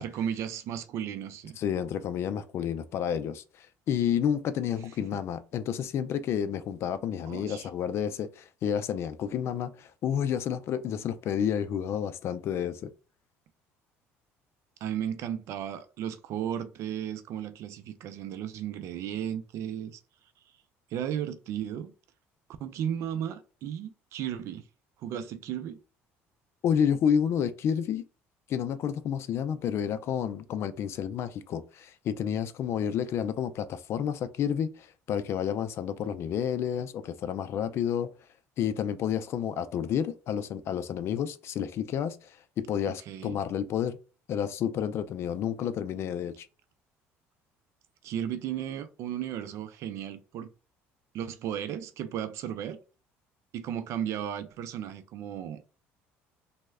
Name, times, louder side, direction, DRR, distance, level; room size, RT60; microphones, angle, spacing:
voice 1, 0.0-1.6 7.2-7.7 14.8-20.0 20.9-21.9 22.6-24.6 25.0-25.8 42.9-43.4 48.0-50.5 51.1-52.8 53.5-55.6, right 9 dB, 65° right, 0.4 m, -35 dB
voice 2, 1.6-12.9 26.6-28.0 28.5-38.1 38.6-42.4 42.7-44.0 44.3-46.5, left 8 dB, 55° left, 0.3 m, -30 dB
3.1 x 2.1 x 3.5 m
cardioid pair, 110°, 5 cm